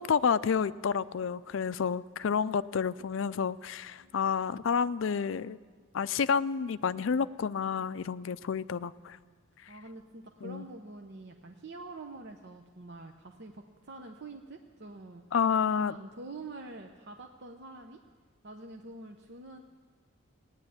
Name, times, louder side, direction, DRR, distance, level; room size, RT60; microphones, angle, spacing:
voice 1, 0.0-5.6 5.9-9.2 10.4-10.7 15.3-15.9, left 6 dB, 65° left, 16 dB, 0.4 m, -29 dB
voice 2, 9.7-15.2 15.8-18.0 18.4-19.6, right 2 dB, 55° right, 4 dB, 0.8 m, -46 dB
17.0 x 9.7 x 8.6 m, 1.5 s
head